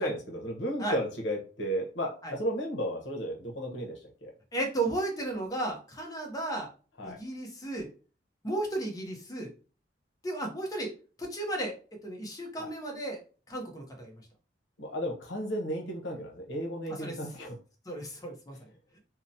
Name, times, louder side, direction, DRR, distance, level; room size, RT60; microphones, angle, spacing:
voice 1, 0.0-4.3 7.0-7.2 12.6-12.7 14.8-17.5, equal, 75° left, 1 dB, 0.8 m, -34 dB
voice 2, 4.5-6.7 7.0-7.9 8.4-9.5 10.2-10.9 11.2-11.7 12.0-13.2 13.5-14.2 17.0-17.2 17.9-18.6, right 2 dB, 20° left, 1 dB, 0.6 m, -34 dB
2.8 x 2.0 x 2.6 m, 0.37 s
head